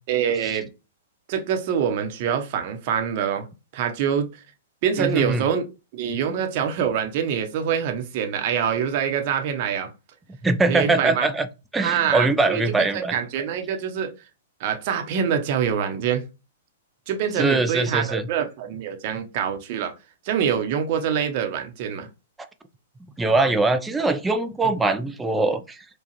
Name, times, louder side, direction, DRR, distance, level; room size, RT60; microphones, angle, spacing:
voice 1, 0.1-0.7 1.3-3.5 3.7-4.3 4.8-5.7 5.9-9.9 10.7-11.3 11.8-14.1 14.6-16.3 17.1-19.9 20.2-22.1 24.6-24.7, right 8 dB, 50° right, 0.9 m, -25 dB
voice 2, 5.0-5.4 10.4-11.5 11.7-13.2 17.4-18.2 23.2-25.8, right 3 dB, 10° right, 0.5 m, -22 dB
4.7 x 2.4 x 3.0 m
hypercardioid pair, 115°, 0 cm